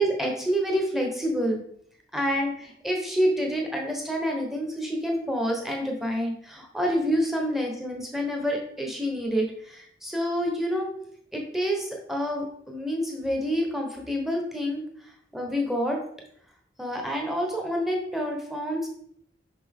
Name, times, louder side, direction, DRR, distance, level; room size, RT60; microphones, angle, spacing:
voice 1, 0.0-1.6 2.1-10.9 11.3-14.8 15.3-16.0 16.8-18.9, equal, ahead, 1 dB, 1.1 m, -28 dB
5.9 x 5.7 x 3.6 m, 0.65 s
head